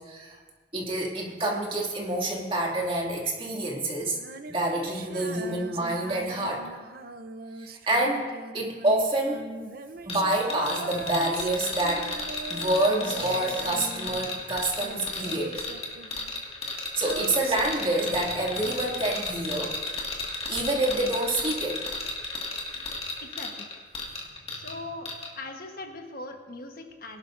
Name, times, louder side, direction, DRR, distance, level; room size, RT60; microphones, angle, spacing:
voice 1, 0.1-0.4 0.7-4.2 4.5-6.7 7.6-8.3 8.5-9.5 10.1-12.1 12.5-15.7 17.0-19.8 20.5-21.8, right 1 dB, 30° right, -2 dB, 2.3 m, -27 dB
Female singing, 4.1-14.5 14.7-19.2, right 3 dB, 55° right, 0.7 m, -41 dB
sound 1, 10.1-24.8 25.1-25.3, left 3 dB, 35° left, 1.9 m, -34 dB
voice 2, 23.2-23.7 24.5-25.1 25.3-27.2, left 2 dB, 55° left, 3 dB, 1.2 m, -40 dB
21.5 x 12.0 x 2.6 m, 1.4 s
head